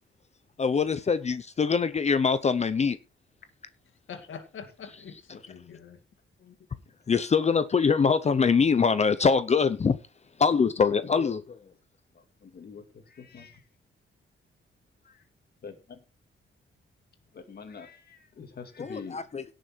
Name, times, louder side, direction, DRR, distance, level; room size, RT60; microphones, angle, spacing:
voice 1, 0.6-3.0 5.1-5.2 7.1-10.0 10.4-11.6 18.8-19.4, left 5 dB, 30° left, 12 dB, 0.7 m, -24 dB
voice 2, 4.1-6.0 6.4-6.5, left 7 dB, 70° left, 5 dB, 2.4 m, -44 dB
voice 3, 12.4-13.6 15.6-16.0 17.3-19.2, left 5 dB, 50° left, 6 dB, 2.2 m, -44 dB
17.0 x 6.5 x 4.5 m, 0.33 s
wide cardioid pair, 155°, 21 cm